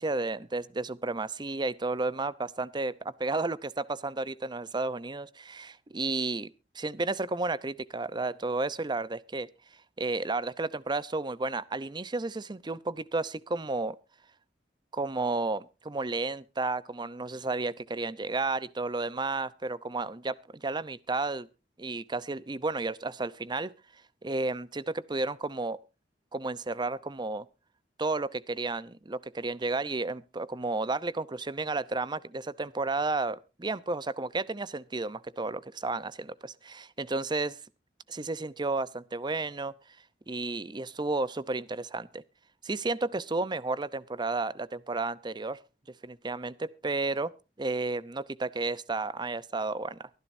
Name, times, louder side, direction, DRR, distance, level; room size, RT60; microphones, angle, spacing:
voice 1, 0.0-9.5 10.0-14.0 14.9-21.5 21.8-23.7 24.2-25.8 26.3-27.5 28.0-37.6 38.1-39.7 40.3-42.2 42.6-45.6 46.0-47.3 47.6-50.1, right 3 dB, 25° right, 0.7 m, -32 dB
24.0 x 10.5 x 2.6 m
head